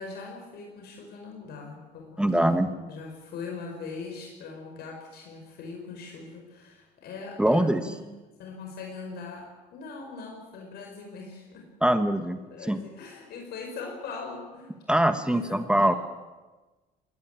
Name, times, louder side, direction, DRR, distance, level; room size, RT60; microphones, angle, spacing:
voice 1, 0.0-8.0 8.4-11.7 12.4-14.8 15.2-16.0, left 4 dB, 70° left, 1 dB, 4.9 m, -41 dB
voice 2, 2.2-2.7 7.4-7.8 11.8-12.4 12.7-12.8 14.9-15.9, right 1 dB, 5° right, 9 dB, 1.3 m, -22 dB
21.0 x 17.5 x 9.0 m, 1.2 s
cardioid pair, 110°, 17 cm